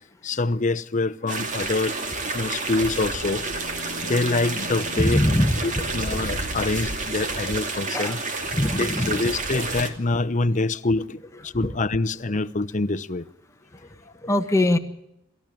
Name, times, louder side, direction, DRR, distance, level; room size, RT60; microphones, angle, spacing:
voice 1, 0.2-2.0 2.3-3.5 4.0-5.2 5.6-8.2 8.7-13.3 14.1-14.2, left 3 dB, 40° left, 0.8 m, -25 dB
sound 1, 1.3-9.9, right 3 dB, 40° right, 2.4 m, -30 dB
Bowed string instrument, 2.7-7.5, left 3 dB, 65° left, 1.1 m, -42 dB
voice 2, 5.0-5.8 6.3-6.4 7.9-8.2 8.5-9.1 11.5-11.7 13.7-14.8, left 1 dB, 15° left, 1.5 m, -23 dB
28.0 x 14.0 x 9.1 m
head